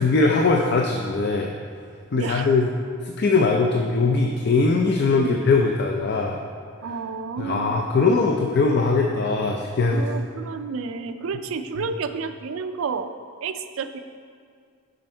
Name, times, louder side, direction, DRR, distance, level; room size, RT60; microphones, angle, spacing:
voice 1, 0.0-1.5 2.1-2.7 3.0-6.4 7.4-10.0, left 3 dB, 50° left, 1 dB, 0.4 m, -21 dB
voice 2, 2.1-2.5 5.1-5.5 6.8-7.9 9.9-13.1 13.4-14.0, right 5 dB, 65° right, 9 dB, 0.4 m, -31 dB
7.7 x 5.3 x 4.4 m, 2.1 s
head